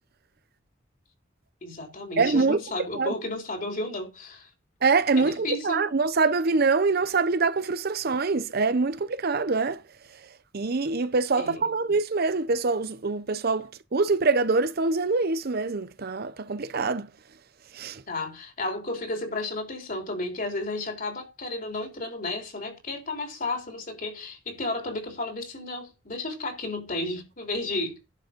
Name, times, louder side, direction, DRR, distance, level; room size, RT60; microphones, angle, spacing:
voice 1, 1.6-4.5 5.2-5.9 11.4-11.7 18.1-28.0, left 2 dB, 45° left, 3.6 m, -33 dB
voice 2, 2.2-2.6 3.0-3.1 4.8-9.8 10.5-17.1 17.8-18.0, right 4 dB, 55° right, 0.7 m, -24 dB
11.0 x 6.1 x 5.2 m
head